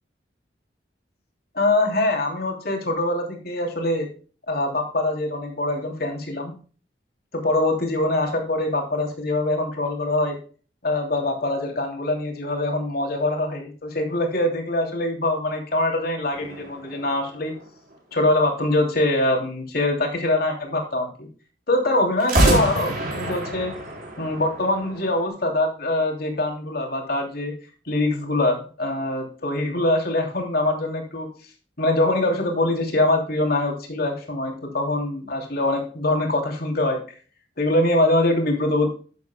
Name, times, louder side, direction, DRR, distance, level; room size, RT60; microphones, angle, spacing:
voice 1, 1.5-4.1 4.5-6.5 7.3-10.4 10.8-17.6 18.1-21.3 21.7-23.7 24.2-27.5 27.8-31.3 31.8-37.0 37.6-38.9, left 1 dB, 55° left, 2 dB, 3.0 m, -23 dB
sound 1, 16.3-18.1 22.2-25.3, right 1 dB, 50° right, 4.1 m, -26 dB
12.0 x 8.3 x 2.2 m, 0.38 s
head